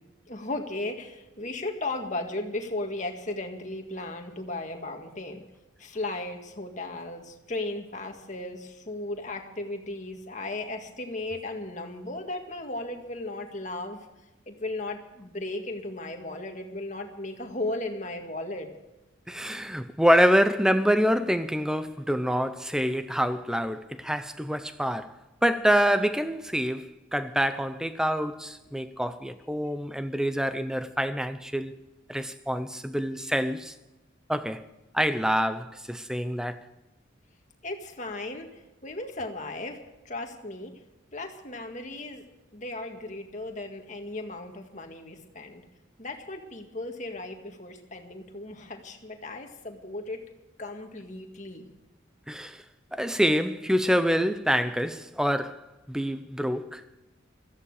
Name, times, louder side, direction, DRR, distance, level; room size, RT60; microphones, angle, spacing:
voice 1, 0.3-5.4 5.8-14.1 14.5-18.7 37.6-40.8 41.1-42.2 42.5-45.6 46.0-50.2 50.6-51.7, left 2 dB, 40° left, 1.9 m, -36 dB
voice 2, 19.3-25.1 25.4-31.8 32.1-33.7 34.3-34.7 34.9-36.6 52.3-52.6 52.9-55.6 55.9-56.8, equal, 5° right, 0.7 m, -26 dB
17.0 x 14.5 x 4.9 m
head